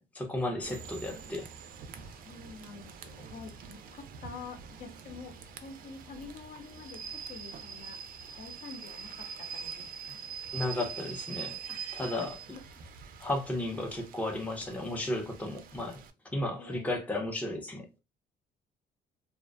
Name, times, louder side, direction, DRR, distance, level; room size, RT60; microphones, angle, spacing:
voice 1, 0.1-1.5 10.5-11.6 11.9-12.3 13.2-16.0 16.3-17.9, left 1 dB, 10° left, 0.5 m, -34 dB
Rain / Train, 0.6-16.1, right 7 dB, 60° right, 0.4 m, -44 dB
voice 2, 2.0-5.3 5.6-8.0 8.4-10.2 11.7-12.6 16.6-17.0, left 4 dB, 60° left, 0.7 m, -47 dB
2.5 x 2.1 x 2.4 m
cardioid pair, 110°, 17 cm